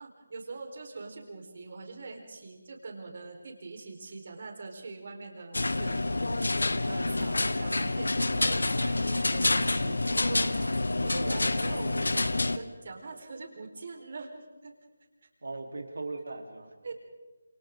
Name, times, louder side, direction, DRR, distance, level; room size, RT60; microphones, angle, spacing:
voice 1, 0.0-6.0 6.9-14.3 14.6-14.7 16.8-17.0, right 3 dB, 50° right, 3 dB, 4.4 m, -43 dB
sound 1, 5.5-12.6, left 2 dB, 70° left, 1.1 m, -28 dB
voice 2, 11.0-11.5 15.4-16.7, right 2 dB, 70° right, 3 dB, 3.6 m, -39 dB
29.0 x 27.5 x 3.9 m, 1.2 s
figure-of-eight pair, 155°, 0 cm